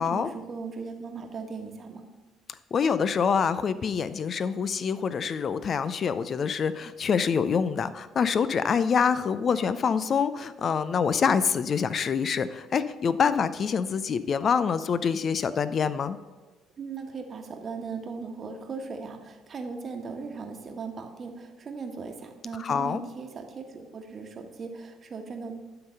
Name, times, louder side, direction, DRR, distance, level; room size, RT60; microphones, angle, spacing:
voice 1, 0.0-2.1 16.8-25.6, right 4 dB, 45° right, 5 dB, 1.2 m, -38 dB
voice 2, 2.7-16.2 22.6-23.0, left 6 dB, 45° left, 14 dB, 0.4 m, -26 dB
11.5 x 3.9 x 5.5 m, 1.2 s
hypercardioid pair, 55°, 0 cm